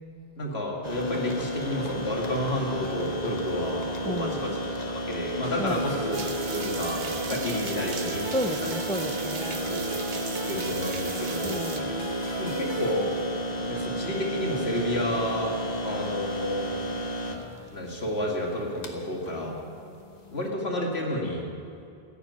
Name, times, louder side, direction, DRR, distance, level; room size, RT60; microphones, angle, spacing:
voice 1, 0.4-4.6 4.9-8.2 8.6-8.8 9.7-9.8 10.5-11.6 12.4-13.1 13.7-15.5 15.8-16.7 17.7-19.6 20.3-21.5, left 1 dB, 75° left, -2 dB, 2.4 m, -30 dB
sound 1, 0.8-20.5, equal, 40° left, 1.3 m, -33 dB
voice 2, 4.0-4.5 5.6-6.0 8.3-9.8 11.4-12.1, equal, 10° left, 7 dB, 0.4 m, -33 dB
sound 2, 5.4-13.7, right 2 dB, 25° right, 1.3 m, -38 dB
sound 3, 6.1-11.8, right 6 dB, 70° right, 1.1 m, -38 dB
15.0 x 7.2 x 9.5 m, 2.5 s
omnidirectional pair, 1.1 m